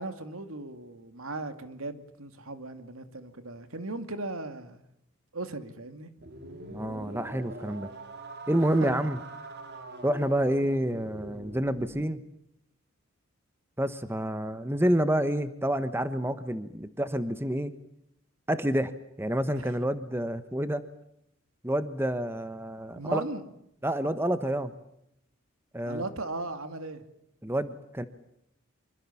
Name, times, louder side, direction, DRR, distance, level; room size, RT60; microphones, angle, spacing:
voice 1, 0.0-4.8 5.3-6.1 8.8-8.9 19.5-19.7 22.9-23.4 25.8-27.0, right 2 dB, 80° right, 9 dB, 2.5 m, -37 dB
sound 1, 6.2-12.1, right 2 dB, 50° right, 2.5 m, -43 dB
voice 2, 6.7-7.9 8.5-9.2 10.0-12.2 13.8-17.7 18.5-18.9 19.2-20.8 21.6-23.2 23.8-24.7 25.7-26.0 27.4-28.1, right 1 dB, 10° right, 11 dB, 1.2 m, -28 dB
26.0 x 25.0 x 7.2 m, 0.78 s
head